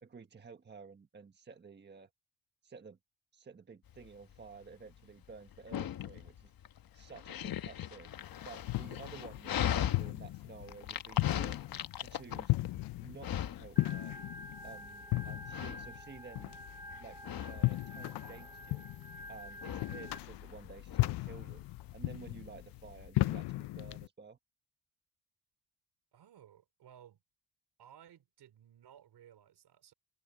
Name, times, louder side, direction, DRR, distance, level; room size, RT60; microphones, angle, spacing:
voice 1, 0.0-2.1 2.6-3.0 3.3-6.5 6.9-8.1 8.4-11.6 12.0-12.5 13.0-14.2 14.6-16.6 17.0-18.9 19.3-21.6 21.9-24.4, right 5 dB, 25° right, 1.4 m, -52 dB
Dog, 3.9-23.1, left 10 dB, 55° left, 1.2 m, -40 dB
sound 1, 8.2-24.1, left 19 dB, 70° left, 0.6 m, -36 dB
Organ, 13.8-20.2, equal, 10° right, 0.7 m, -49 dB
voice 2, 26.1-27.2 27.8-29.9, right 10 dB, 65° right, 3.6 m, -58 dB
cardioid pair, 120°, 43 cm